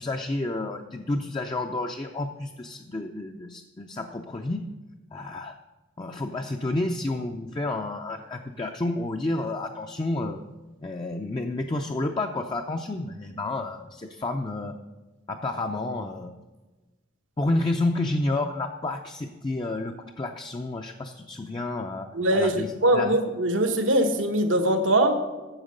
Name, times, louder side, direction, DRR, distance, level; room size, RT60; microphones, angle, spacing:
voice 1, 0.0-4.6 5.1-5.5 6.0-10.4 10.8-14.8 15.3-16.3 17.4-23.2, left 2 dB, 25° left, 4 dB, 0.4 m, -30 dB
voice 2, 22.1-25.2, right 1 dB, 85° right, 7 dB, 1.2 m, -22 dB
8.8 x 7.1 x 6.5 m, 1.2 s
head